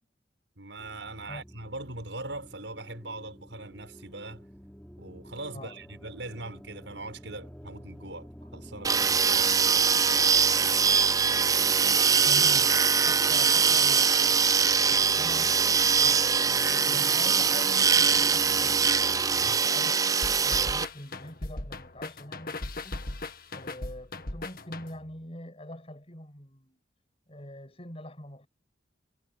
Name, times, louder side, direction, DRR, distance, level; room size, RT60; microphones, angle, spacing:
voice 1, 0.6-4.5 5.0-10.7 11.0-11.1 19.4-19.7, right 2 dB, 80° right, 6.3 m, -41 dB
sound 1, 0.8-19.5, equal, 5° left, 6.9 m, -46 dB
sound 2, 8.8-20.8, right 6 dB, 20° right, 0.4 m, -23 dB
voice 2, 12.2-18.9 19.3-20.0 20.4-23.0 23.5-26.8 27.3-28.5, left 1 dB, 35° left, 7.4 m, -44 dB
sound 3, 20.2-25.2, left 2 dB, 55° left, 1.9 m, -38 dB
head